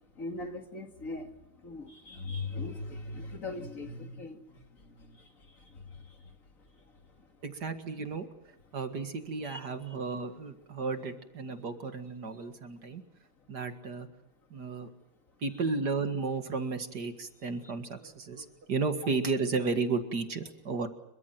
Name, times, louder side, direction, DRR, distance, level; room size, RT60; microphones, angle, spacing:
voice 1, 0.2-6.3 7.2-7.3 9.4-9.6, left 3 dB, 45° left, 4 dB, 2.6 m, -41 dB
voice 2, 7.4-8.3 8.7-13.0 13.5-14.1 14.5-14.9 15.4-20.9, right 4 dB, 60° right, 7 dB, 2.5 m, -33 dB
30.0 x 23.5 x 6.0 m, 0.87 s
omnidirectional pair, 2.1 m